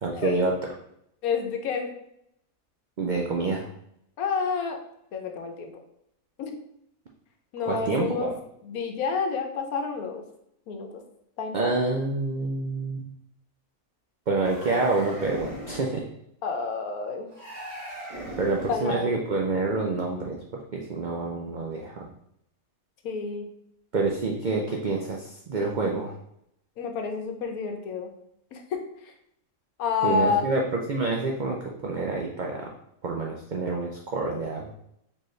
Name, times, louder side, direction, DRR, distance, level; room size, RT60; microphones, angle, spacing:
voice 1, 0.0-0.5 3.0-3.7 7.7-8.3 11.5-13.1 14.3-16.0 18.4-20.4 20.7-22.1 23.9-26.2 30.0-32.7 33.0-34.7, right 3 dB, 80° right, -1 dB, 0.4 m, -27 dB
voice 2, 1.2-1.9 4.2-4.8 5.1-5.8 6.4-6.5 7.5-8.3 8.6-10.2 10.7-11.0 11.4-11.7 16.4-17.3 18.7-19.1 23.0-23.5 26.8-28.1 28.5-28.8 29.8-30.5, left 5 dB, 85° left, 5 dB, 1.2 m, -29 dB
sound 1, 14.3-16.0 17.3-18.9, right 1 dB, 30° right, 1.1 m, -38 dB
4.4 x 3.1 x 3.1 m, 0.75 s
omnidirectional pair, 1.5 m